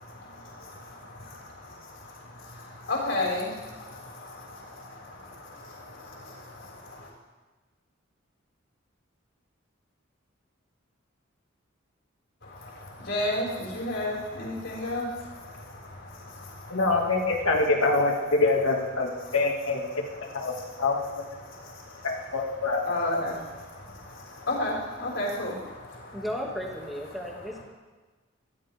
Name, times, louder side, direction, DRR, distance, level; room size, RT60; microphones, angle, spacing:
voice 1, 0.0-7.1 12.4-17.7 19.0-19.4 19.9-26.3 27.1-27.6, left 1 dB, 65° left, -4 dB, 6.0 m, -35 dB
voice 2, 16.7-21.0 22.0-22.8, left 3 dB, 85° left, 0 dB, 2.7 m, -25 dB
voice 3, 26.1-27.6, equal, ahead, -2 dB, 2.6 m, -34 dB
24.0 x 15.0 x 3.8 m, 1.3 s
head